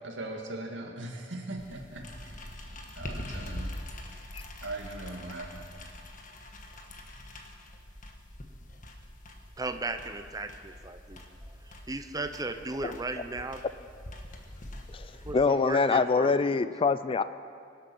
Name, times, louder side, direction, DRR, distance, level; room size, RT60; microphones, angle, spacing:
voice 1, 0.0-2.5 2.9-3.7 4.6-5.7, right 2 dB, 85° right, 1 dB, 2.0 m, -39 dB
sound 1, 1.6-15.3, left 1 dB, 45° left, 1.4 m, -44 dB
voice 2, 9.6-11.2 11.6-13.6 15.2-16.5, right 2 dB, 20° right, 8 dB, 0.9 m, -36 dB
voice 3, 14.9-17.2, left 4 dB, 30° left, 13 dB, 0.4 m, -25 dB
23.5 x 8.4 x 6.2 m, 2.3 s
head